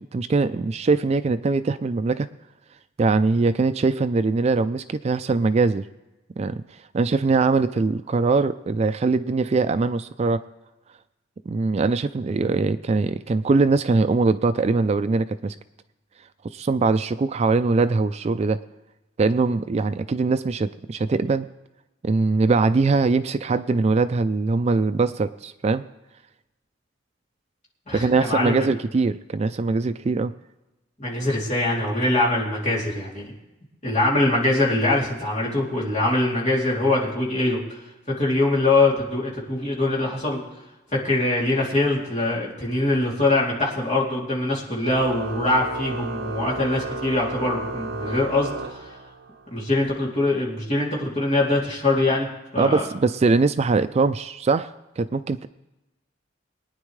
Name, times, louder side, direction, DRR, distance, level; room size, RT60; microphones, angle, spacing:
voice 1, 0.1-2.3 3.0-5.9 6.4-6.6 6.9-10.4 11.5-15.5 16.4-18.6 19.2-21.5 22.0-25.8 27.9-30.3 52.6-55.5, right 3 dB, 35° right, 11 dB, 0.3 m, -22 dB
voice 2, 27.9-28.7 31.0-33.3 33.8-37.6 38.1-40.4 40.9-48.9 49.5-52.3 52.5-52.9, left 2 dB, 35° left, -5 dB, 2.9 m, -23 dB
Organ, 44.9-49.4, right 3 dB, 55° right, 0.9 m, -33 dB
23.0 x 9.7 x 3.2 m, 1.0 s
head